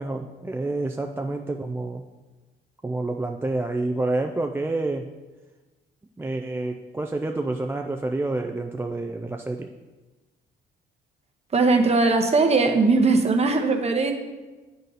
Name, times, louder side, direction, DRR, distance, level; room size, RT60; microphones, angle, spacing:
voice 1, 0.0-2.0 2.8-5.1 6.2-9.7, right 2 dB, 10° right, 3 dB, 0.4 m, -28 dB
voice 2, 11.5-14.1, right 3 dB, 30° right, 4 dB, 0.9 m, -19 dB
8.9 x 4.0 x 4.0 m, 1.2 s
cardioid pair, 90°, 20 cm